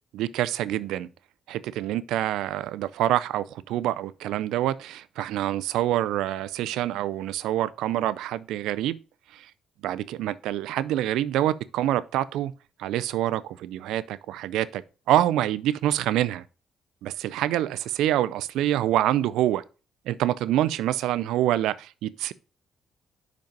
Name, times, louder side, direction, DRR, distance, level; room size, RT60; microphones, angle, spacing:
voice 1, 0.1-1.1 1.5-9.0 9.3-9.5 9.8-12.5 12.8-16.4 17.0-19.6 20.1-22.3, right 13 dB, 90° right, 0.4 m, -26 dB
5.3 x 5.2 x 5.1 m
cardioid pair, 90°, 0 cm